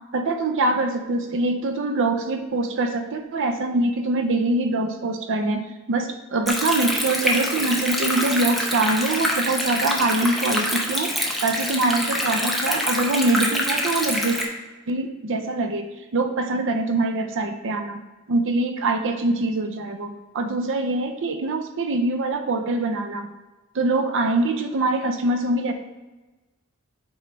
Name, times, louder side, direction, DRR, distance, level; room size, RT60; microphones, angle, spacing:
voice 1, 0.1-5.6 5.9-11.1 11.4-14.4 14.9-18.0 18.3-23.3 23.7-25.7, right 2 dB, 60° right, 6 dB, 0.6 m, -24 dB
Stream, 6.5-14.5, equal, ahead, 0.8 m, -25 dB
7.8 x 3.1 x 5.1 m, 1.2 s
head